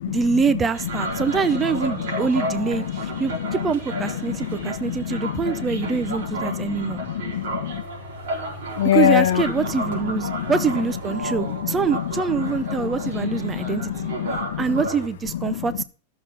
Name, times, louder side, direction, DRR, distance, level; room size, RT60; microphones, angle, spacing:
voice 1, 0.1-7.0 8.8-14.1 14.6-15.8, right 5 dB, 10° right, 0.5 m, -25 dB
sound 1, 0.7-15.1, right 2 dB, 75° right, 4.3 m, -33 dB
voice 2, 4.3-5.4 6.4-7.8 8.8-9.4 10.3-10.5 11.3-11.7 12.8-13.0 13.2-14.6, left 11 dB, 75° left, 0.8 m, -25 dB
13.0 x 6.9 x 5.8 m
supercardioid pair, 180°, 0 cm